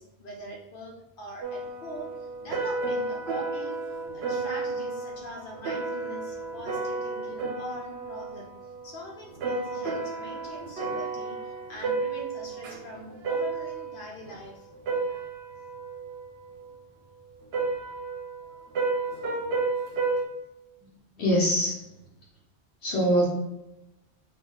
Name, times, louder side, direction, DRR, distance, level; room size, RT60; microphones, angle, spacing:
voice 1, 0.0-3.8 4.1-14.7, left 1 dB, 55° left, -1 dB, 1.1 m, -42 dB
sound 1, 1.4-14.4 14.7-16.8 17.5-20.3, right 3 dB, 75° right, 0.9 m, -32 dB
voice 2, 21.2-21.8 22.8-23.2, equal, 85° left, -7 dB, 1.1 m, -23 dB
4.0 x 2.7 x 3.8 m, 0.88 s
omnidirectional pair, 1.1 m